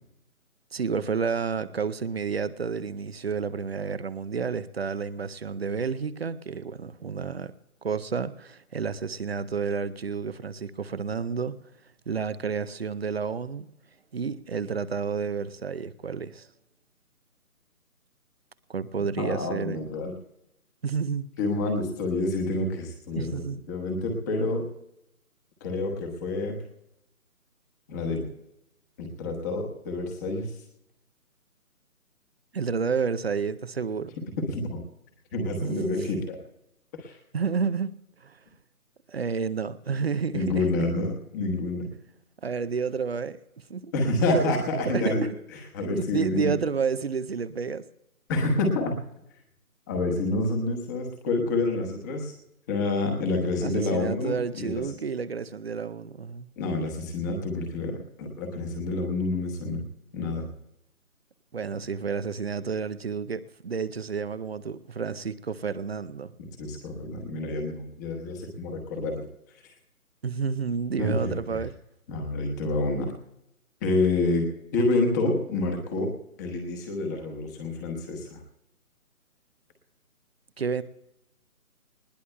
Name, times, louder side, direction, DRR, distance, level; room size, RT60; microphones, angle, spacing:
voice 1, 0.7-7.5 7.8-11.6 12.1-13.7 14.1-16.5 18.7-19.8 20.8-21.3 23.2-23.6 32.5-34.1 35.6-36.0 37.3-37.9 38.2-38.4 39.1-40.7 42.4-43.4 43.7-43.9 44.3-44.6 44.9-45.3 45.8-47.8 53.6-56.5 61.5-66.3 70.2-71.7 80.6-80.8, right 5 dB, 45° right, 0.5 m, -30 dB
voice 2, 19.2-20.1 21.4-23.4 23.7-24.7 25.6-26.6 27.9-28.2 29.0-30.5 34.5-34.8 35.3-36.4 36.9-37.2 40.3-41.9 43.9-45.3 45.5-46.5 48.3-48.9 49.9-52.3 52.7-54.8 56.6-59.8 60.1-60.5 66.6-69.2 71.0-71.6 72.1-73.1 73.8-74.5 74.7-76.1 76.4-78.4, left 2 dB, 10° left, 1.2 m, -28 dB
20.0 x 18.5 x 2.2 m
figure-of-eight pair, 155°, 43 cm